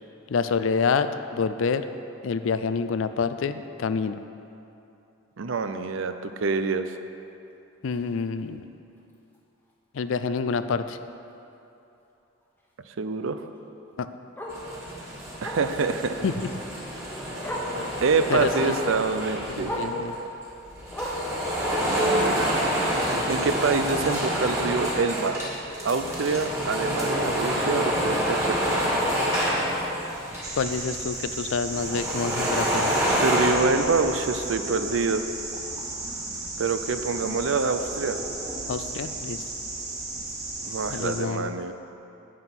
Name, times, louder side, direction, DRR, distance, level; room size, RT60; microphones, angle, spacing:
voice 1, 0.3-1.9 2.2-4.2 7.8-8.6 9.9-11.0 14.0-14.1 16.2-16.5 18.3-18.7 19.5-20.2 30.6-32.9 38.7-39.4 40.9-41.5, left 5 dB, 70° left, 11 dB, 0.4 m, -27 dB
voice 2, 5.4-7.0 13.0-13.4 15.4-16.2 17.7-19.7 21.9-22.5 23.3-25.4 25.8-28.7 33.1-35.3 36.6-38.2 40.6-41.7, right 4 dB, 70° right, 9 dB, 0.5 m, -26 dB
Bark, 7.9-8.1 8.5-8.6 9.0-9.1 9.3-9.4 10.9-11.0 13.5-13.6 14.4-14.6 15.4-15.7 16.9-17.0 17.4-17.8 18.5-18.8 19.6-20.0 20.9-21.4 22.3-22.4, equal, 10° left, 1.2 m, -33 dB
sound 1, 14.5-20.1 20.7-30.9 31.1-31.2 31.6-33.5, equal, 15° right, 1.9 m, -27 dB
sound 2, 30.4-41.2, right 2 dB, 30° right, 1.8 m, -34 dB
9.4 x 8.0 x 5.9 m, 2.8 s
head